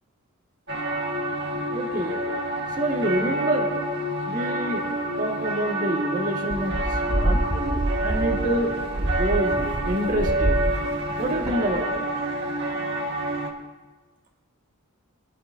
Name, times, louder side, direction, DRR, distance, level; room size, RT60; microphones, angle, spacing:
sound 1, 0.7-13.5, right 1 dB, 55° right, 1.6 m, -28 dB
voice 1, 1.7-2.2 2.8-3.7 4.3-4.8 5.2-6.8 7.1-9.6 9.8-10.6 11.2-12.1, right 1 dB, 40° right, 0 dB, 1.8 m, -27 dB
sound 2, 6.5-12.0, right 1 dB, 15° right, 0.5 m, -27 dB
22.0 x 11.5 x 2.7 m, 1.3 s
head